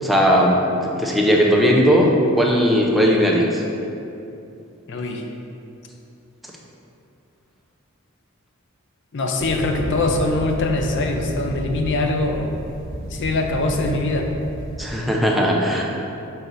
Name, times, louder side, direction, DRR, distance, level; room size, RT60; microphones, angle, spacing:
voice 1, 0.0-3.6 14.8-15.8, equal, ahead, -2 dB, 0.6 m, -18 dB
voice 2, 4.9-5.3 9.1-12.5 13.1-14.3, left 2 dB, 60° left, 3 dB, 0.6 m, -22 dB
sound 1, 9.4-14.8, equal, 60° right, 1.2 m, -32 dB
6.0 x 4.0 x 4.0 m, 2.7 s
head